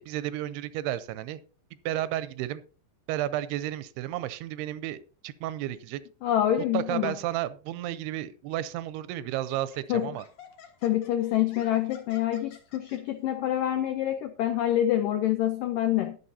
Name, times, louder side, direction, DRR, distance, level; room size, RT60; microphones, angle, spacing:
voice 1, 0.0-1.4 1.9-2.6 3.1-5.0 5.2-6.0 6.7-10.2, right 13 dB, 80° right, 15 dB, 2.5 m, -32 dB
voice 2, 6.2-7.2 9.9-10.1 10.8-16.2, left 12 dB, 85° left, 8 dB, 1.9 m, -26 dB
Laughter, 8.5-8.7 9.3-13.0, left 7 dB, 60° left, 2.0 m, -52 dB
20.0 x 6.8 x 2.8 m, 0.37 s
omnidirectional pair, 4.8 m